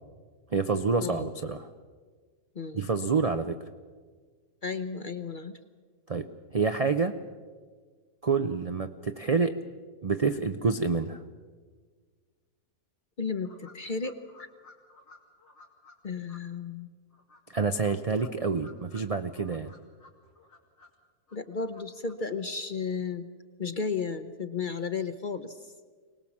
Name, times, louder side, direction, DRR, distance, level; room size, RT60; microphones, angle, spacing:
voice 1, 0.5-1.7 2.7-3.6 6.1-7.2 8.2-9.6 10.0-11.2 17.5-19.7, right 4 dB, 55° right, 9 dB, 0.4 m, -28 dB
voice 2, 2.5-2.9 4.6-5.6 13.2-14.5 16.0-16.9 21.3-23.3 23.6-25.6, left 5 dB, 40° left, 10 dB, 0.8 m, -33 dB
sound 1, 13.4-16.0 16.3-16.4 17.1-19.0 19.3-20.9 21.3-22.1, left 3 dB, 85° left, 3.4 m, -55 dB
24.5 x 19.0 x 7.3 m, 1.5 s
omnidirectional pair, 1.7 m